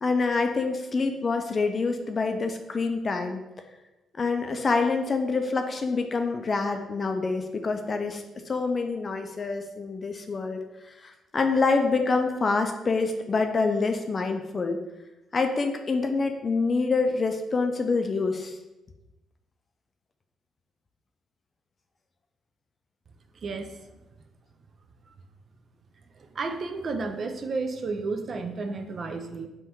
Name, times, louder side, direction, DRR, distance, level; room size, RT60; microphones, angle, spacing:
voice 1, 0.0-3.4 4.2-10.6 11.0-14.8 15.3-18.5, left 4 dB, 40° left, 6 dB, 0.5 m, -26 dB
voice 2, 23.3-24.0 25.1-25.2 26.1-29.5, right 3 dB, 50° right, 7 dB, 0.4 m, -32 dB
3.7 x 2.6 x 4.4 m, 0.99 s
cardioid pair, 90°, 0 cm